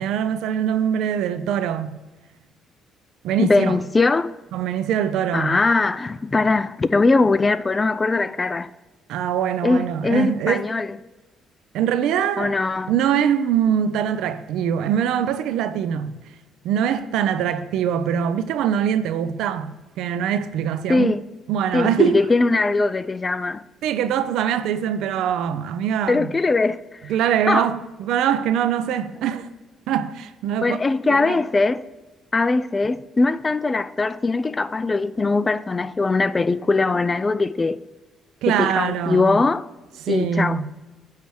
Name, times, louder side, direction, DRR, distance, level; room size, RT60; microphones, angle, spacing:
voice 1, 0.0-2.0 3.2-3.8 4.5-5.6 9.1-10.6 11.7-12.6 12.9-16.2 16.6-19.7 20.0-21.1 21.5-22.2 23.8-26.3 27.1-29.5 29.9-30.8 31.1-31.4 38.4-39.4 40.0-40.7, right 9 dB, 80° right, 0.5 m, -23 dB
voice 2, 3.4-4.3 5.3-8.7 9.6-10.9 12.4-12.9 20.9-21.2 21.7-23.6 26.1-27.1 27.5-27.7 30.6-31.8 32.3-37.8 38.5-39.7 40.1-40.6, left 3 dB, 25° left, 0.3 m, -21 dB
8.0 x 3.3 x 6.3 m
cardioid pair, 90°, 0 cm